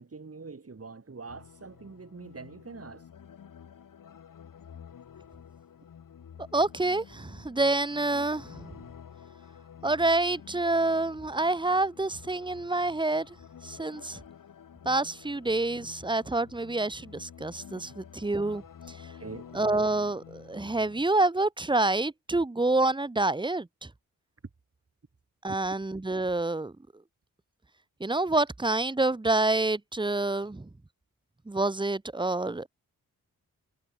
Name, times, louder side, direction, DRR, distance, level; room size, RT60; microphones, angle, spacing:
voice 1, 0.0-3.1 19.2-19.5 25.5-25.6, right 4 dB, 40° right, 7.7 m, -44 dB
sound 1, 1.3-21.0, left 8 dB, 65° left, 1.6 m, -50 dB
voice 2, 6.5-8.8 9.8-13.4 13.6-14.2 14.8-18.6 18.9-19.1 19.5-23.9 25.4-26.7 28.0-30.7 31.5-32.7, right 2 dB, 15° right, 1.0 m, -27 dB
cardioid pair, 60°, 35 cm